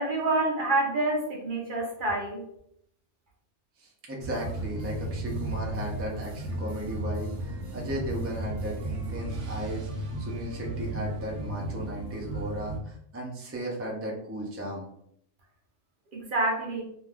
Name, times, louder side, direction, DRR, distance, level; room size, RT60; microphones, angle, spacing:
voice 1, 0.0-2.4 16.1-16.8, right 2 dB, 55° right, -1 dB, 0.7 m, -27 dB
voice 2, 3.8-14.9, equal, 20° right, -2 dB, 0.4 m, -36 dB
sound 1, 4.2-12.8, right 2 dB, 75° right, 1.0 m, -34 dB
2.6 x 2.2 x 3.4 m, 0.70 s
omnidirectional pair, 1.2 m